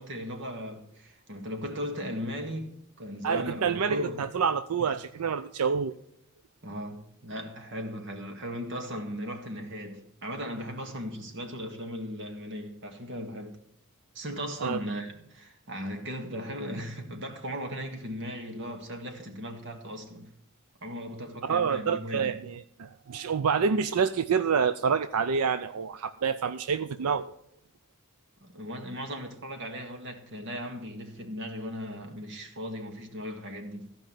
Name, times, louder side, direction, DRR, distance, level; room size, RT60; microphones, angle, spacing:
voice 1, 0.0-4.2 4.8-4.9 6.6-13.6 14.1-20.3 20.8-22.3 28.4-34.0, equal, 55° right, 2.0 m, -37 dB
voice 2, 3.2-5.9 14.6-14.8 21.4-27.3, right 6 dB, 85° right, 0.5 m, -27 dB
14.5 x 5.3 x 9.0 m
head